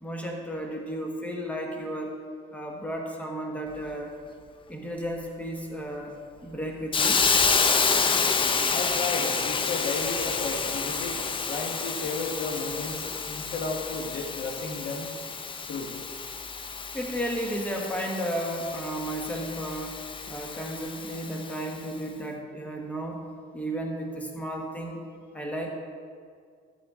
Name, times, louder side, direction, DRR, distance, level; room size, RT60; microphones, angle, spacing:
voice 1, 0.0-2.2 2.5-4.1 4.7-7.3 16.9-20.0 20.3-23.2 23.5-25.1 25.3-25.7, right 1 dB, 10° left, 1 dB, 1.3 m, -33 dB
Hiss, 6.9-21.7, left 5 dB, 30° left, 0.6 m, -29 dB
voice 2, 8.7-15.1 15.7-15.9, left 3 dB, 75° left, 2 dB, 1.4 m, -33 dB
12.5 x 8.1 x 3.7 m, 2.1 s
cardioid pair, 110°, 17 cm